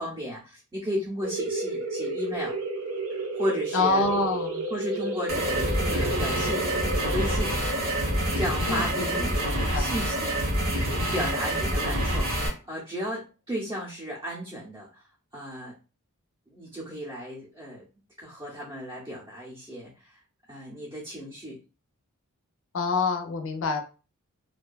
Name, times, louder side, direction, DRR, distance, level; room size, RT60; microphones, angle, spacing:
voice 1, 0.0-2.5 3.4-4.1 4.7-6.7 7.0-7.6 8.3-10.4 11.1-12.3 12.6-15.0 15.3-15.7 16.5-17.8 18.2-20.2 20.5-21.6, equal, 20° right, -7 dB, 0.6 m, -34 dB
sound 1, 1.2-10.5, right 2 dB, 85° right, 0.6 m, -33 dB
voice 2, 3.7-4.7 8.7-10.0 22.7-23.8, left 3 dB, 65° left, 5 dB, 0.5 m, -27 dB
sound 2, 5.3-12.5, right 1 dB, 60° right, 0.9 m, -27 dB
2.5 x 2.2 x 2.3 m, 0.33 s
head